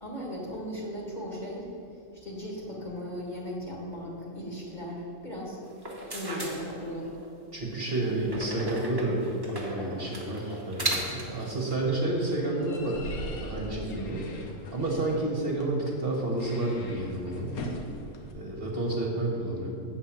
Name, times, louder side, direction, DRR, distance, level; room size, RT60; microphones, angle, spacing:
voice 1, 0.0-1.7 2.2-5.6 6.1-7.1 13.8-14.1, equal, 35° left, -4 dB, 1.9 m, -37 dB
sound 1, 5.7-7.3 8.3-11.4, right 2 dB, 20° right, 1.0 m, -36 dB
voice 2, 7.5-14.2 14.7-17.6 18.3-19.8, right 2 dB, 45° right, -2 dB, 1.3 m, -30 dB
sound 2, 10.7-18.3, left 1 dB, 90° left, 1.4 m, -43 dB
8.1 x 4.5 x 7.2 m, 2.5 s
omnidirectional pair, 1.5 m